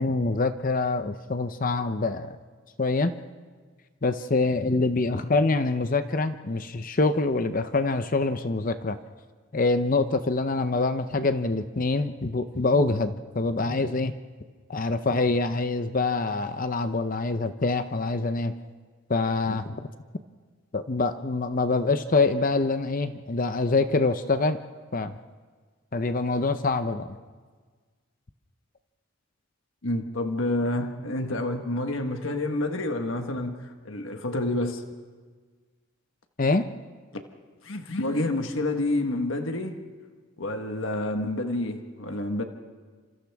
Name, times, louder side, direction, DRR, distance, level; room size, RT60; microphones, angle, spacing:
voice 1, 0.0-2.4 2.8-3.1 4.0-9.0 9.5-14.1 14.7-18.5 19.1-19.8 20.7-24.6 24.9-25.1 25.9-27.1 36.4-36.7, left 3 dB, 40° left, 10 dB, 0.7 m, -25 dB
voice 2, 29.8-34.8 37.1-37.2 37.6-39.8 40.4-42.4, left 1 dB, 65° left, 5 dB, 1.4 m, -28 dB
30.0 x 27.0 x 3.5 m, 1.5 s
head